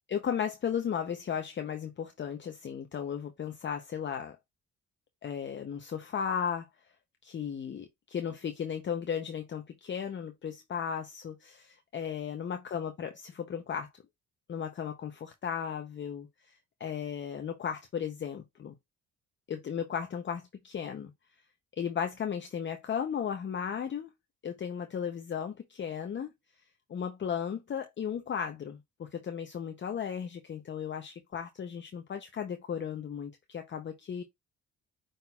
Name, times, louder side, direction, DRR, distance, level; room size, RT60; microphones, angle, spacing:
voice 1, 0.1-4.4 5.2-6.7 7.2-13.9 14.5-16.3 16.8-18.7 19.5-21.1 21.8-24.1 24.4-26.3 26.9-34.2, left 8 dB, 40° left, 0.6 m, -35 dB
5.8 x 3.8 x 2.3 m
cardioid pair, 90°, 30 cm